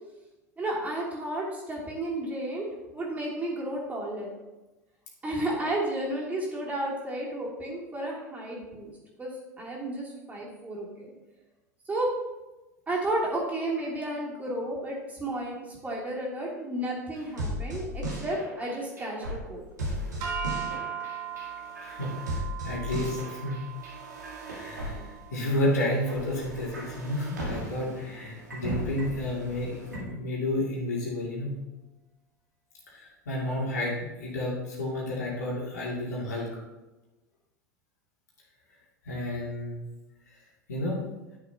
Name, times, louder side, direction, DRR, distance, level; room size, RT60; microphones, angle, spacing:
voice 1, 0.6-2.6 2.9-4.3 5.2-8.9 9.2-11.1 11.9-12.1 12.9-20.0, right 1 dB, 15° right, -5 dB, 3.2 m, -32 dB
sound 1, 17.1-30.0, right 1 dB, 80° right, 2.3 m, -37 dB
sound 2, 20.2-26.6, right 8 dB, 50° right, 1.8 m, -39 dB
voice 2, 21.8-23.6 24.4-31.5 32.9-36.5 39.0-39.8 40.3-40.4 40.7-41.0, left 1 dB, 70° left, -4 dB, 2.8 m, -31 dB
11.5 x 6.7 x 2.9 m, 1.1 s
figure-of-eight pair, 80°, 9 cm